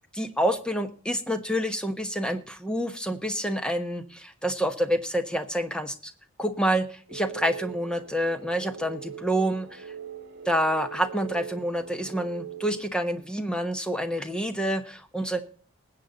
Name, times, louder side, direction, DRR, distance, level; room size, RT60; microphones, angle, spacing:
voice 1, 0.1-6.1 6.4-9.9 10.4-15.4, equal, 5° left, 8 dB, 1.2 m, -28 dB
sound 1, 7.1-12.8, right 8 dB, 50° right, 1.8 m, -41 dB
20.0 x 8.4 x 4.0 m, 0.40 s
head